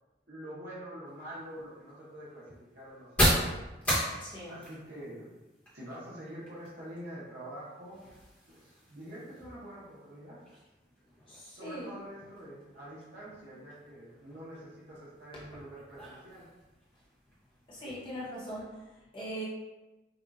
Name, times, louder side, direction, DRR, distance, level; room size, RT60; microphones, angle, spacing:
voice 1, 0.3-3.7 4.5-5.3 5.7-8.0 8.5-10.4 11.5-16.5, right 1 dB, 70° right, -8 dB, 1.1 m, -46 dB
sound 1, 1.0-18.6, equal, 5° left, 1.1 m, -38 dB
voice 2, 4.2-4.6 11.3-11.9 15.3-15.4 17.7-19.5, equal, 30° left, -8 dB, 1.3 m, -41 dB
5.3 x 2.4 x 2.7 m, 1.1 s
head